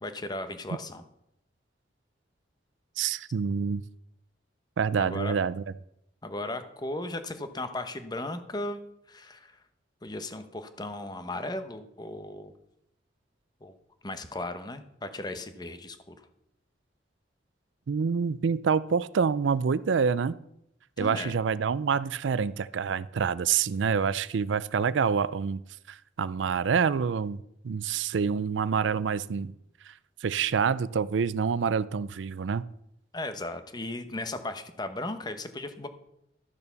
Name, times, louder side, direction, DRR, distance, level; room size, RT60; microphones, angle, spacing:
voice 1, 0.0-1.0 5.0-5.3 6.2-8.8 9.1-9.6 10.0-12.5 13.6-13.8 14.0-16.2 21.0-21.4 33.1-35.9, left 2 dB, 25° left, 9 dB, 1.0 m, -36 dB
voice 2, 3.0-3.8 4.8-5.6 17.9-20.4 21.0-25.6 25.9-27.4 27.6-29.5 29.9-30.0 30.2-32.6, right 6 dB, 90° right, 18 dB, 0.4 m, -27 dB
12.5 x 6.8 x 7.0 m, 0.79 s
head